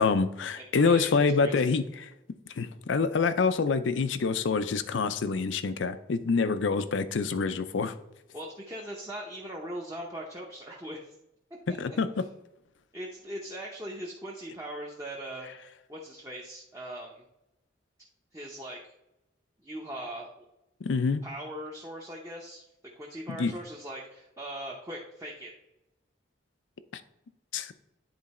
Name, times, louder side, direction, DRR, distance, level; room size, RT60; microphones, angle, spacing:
voice 1, 0.0-2.1 2.6-7.9 11.7-12.2 20.8-21.2 23.3-23.5 26.9-27.0 27.5-27.7, left 4 dB, 80° left, 12 dB, 0.5 m, -26 dB
voice 2, 0.6-1.7 8.3-11.2 11.7-12.0 12.9-15.5 15.9-17.2 18.3-18.9 19.6-20.5 21.2-22.6 23.0-25.5, right 1 dB, 15° right, -2 dB, 0.7 m, -40 dB
9.8 x 3.9 x 4.2 m, 0.91 s
head